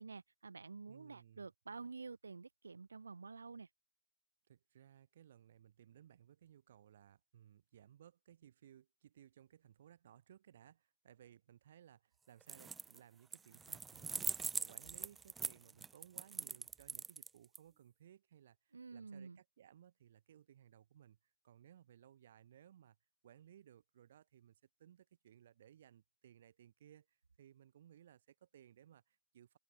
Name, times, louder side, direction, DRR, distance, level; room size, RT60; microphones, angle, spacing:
voice 1, 0.0-3.7 18.7-19.4, right 4 dB, 85° right, 0.7 m, -50 dB
voice 2, 0.9-1.5 4.5-21.2 21.4-23.0 23.2-29.6, right 10 dB, 65° right, 4.6 m, -62 dB
sound 1, 12.4-13.0 13.3-17.6, right 5 dB, 15° right, 0.4 m, -42 dB
open air
hypercardioid pair, 115°, 0 cm